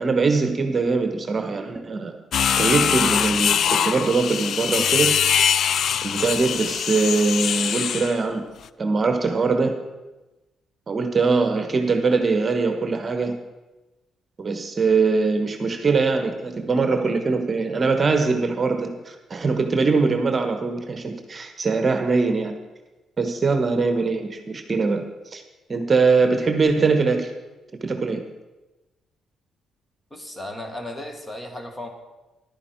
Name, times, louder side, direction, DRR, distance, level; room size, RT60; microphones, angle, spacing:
voice 1, 0.0-2.2 2.6-5.1 6.0-8.4 8.8-9.7 10.9-13.4 14.4-22.5 23.2-25.4 25.7-27.3 27.8-28.2, right 4 dB, 35° right, 6 dB, 1.2 m, -22 dB
sound 1, 2.3-8.2, left 8 dB, 65° left, 0.3 m, -22 dB
voice 2, 30.1-31.9, left 1 dB, 20° left, 4 dB, 1.6 m, -35 dB
11.0 x 9.3 x 4.5 m, 1.1 s
cardioid pair, 90°, 0 cm